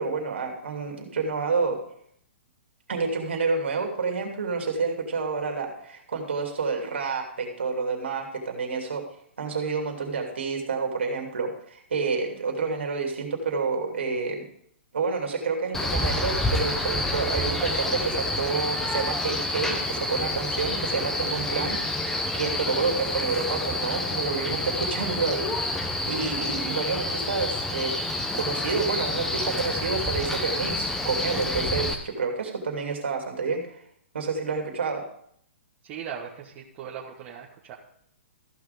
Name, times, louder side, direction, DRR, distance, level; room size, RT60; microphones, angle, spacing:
voice 1, 0.0-1.8 2.9-9.0 9.4-14.4 14.9-25.5 25.8-27.9 28.3-33.8 34.1-35.0, right 4 dB, 70° right, 2 dB, 2.6 m, -29 dB
Male speech man speaking, 15.7-31.9, left 1 dB, 5° left, 1.1 m, -28 dB
voice 2, 35.8-37.8, right 8 dB, 35° right, -4 dB, 1.4 m, -39 dB
14.0 x 6.0 x 5.1 m, 0.67 s
figure-of-eight pair, 120°, 7 cm